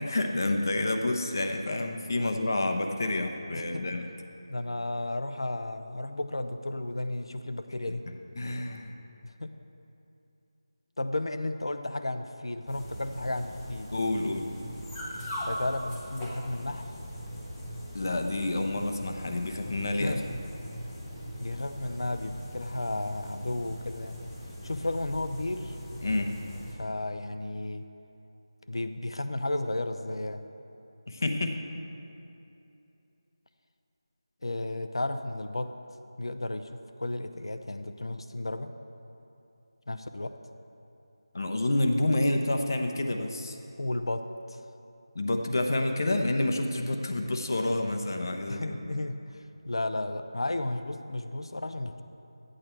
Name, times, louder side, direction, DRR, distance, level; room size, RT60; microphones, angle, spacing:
voice 1, 0.0-4.1 8.4-8.9 13.9-14.5 17.9-20.2 26.0-26.4 31.1-31.6 41.3-43.6 45.1-48.7, left 2 dB, 45° left, 4 dB, 0.8 m, -28 dB
voice 2, 3.5-3.9 4.5-8.1 9.2-9.5 11.0-13.9 15.4-16.9 20.0-20.3 21.4-24.2 24.6-25.8 26.7-27.9 28.7-30.4 34.4-35.8 36.2-38.7 39.9-40.4 43.8-44.6 48.5-49.2 49.6-52.0, left 2 dB, 75° left, 9 dB, 0.7 m, -33 dB
sound 1, 12.7-26.7, equal, 5° left, 0.8 m, -40 dB
12.5 x 8.9 x 4.5 m, 2.8 s
figure-of-eight pair, 175°, 3 cm